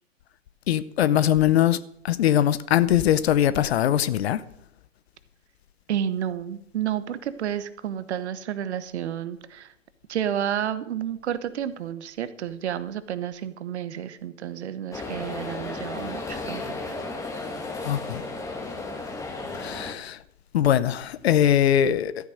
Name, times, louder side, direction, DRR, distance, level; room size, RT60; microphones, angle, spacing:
voice 1, 0.7-4.4 17.8-18.2 19.5-20.2 20.5-22.3, left 11 dB, 50° left, 0.7 m, -22 dB
voice 2, 5.9-9.7 10.1-16.8, right 10 dB, 55° right, 1.1 m, -31 dB
sound 1, 14.9-19.9, left 3 dB, 10° left, 1.4 m, -34 dB
13.0 x 8.9 x 6.4 m
hypercardioid pair, 135°, 39 cm